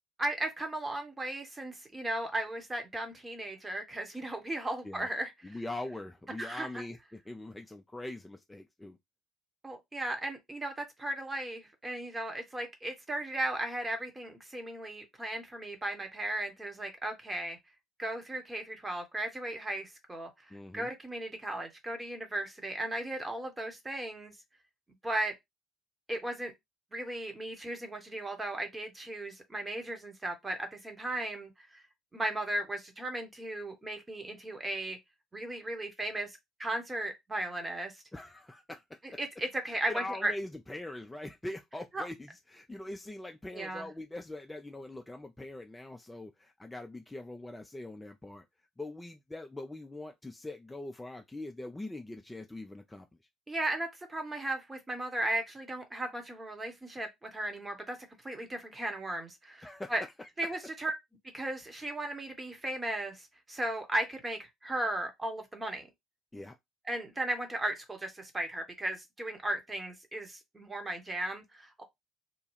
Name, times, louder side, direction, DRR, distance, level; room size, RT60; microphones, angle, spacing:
voice 1, 0.2-5.3 6.4-6.8 9.6-17.6 18.0-24.3 25.0-25.3 26.1-26.5 26.9-31.8 32.1-35.0 35.3-38.0 39.2-40.3 41.9-42.0 43.5-43.9 53.5-58.0 58.2-60.0 60.4-60.9 61.3-65.9 66.9-71.8, right 1 dB, 20° right, 1.0 m, -36 dB
voice 2, 5.4-9.0 20.5-20.9 38.1-39.2 39.7-48.4 48.8-53.1 59.6-59.9 60.2-60.5 66.3-66.6, left 2 dB, 10° left, 0.4 m, -42 dB
2.8 x 2.3 x 3.1 m
figure-of-eight pair, 55°, 0 cm